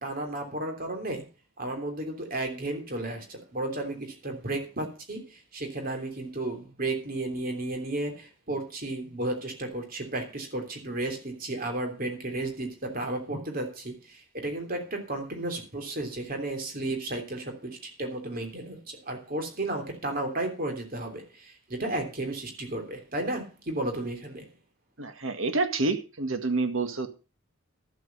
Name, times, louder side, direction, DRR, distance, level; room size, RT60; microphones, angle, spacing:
voice 1, 0.0-1.2 1.6-24.5, right 2 dB, 45° right, 4 dB, 3.2 m, -33 dB
voice 2, 25.0-27.1, right 3 dB, 80° right, 8 dB, 1.9 m, -28 dB
12.5 x 8.3 x 5.6 m, 0.32 s
head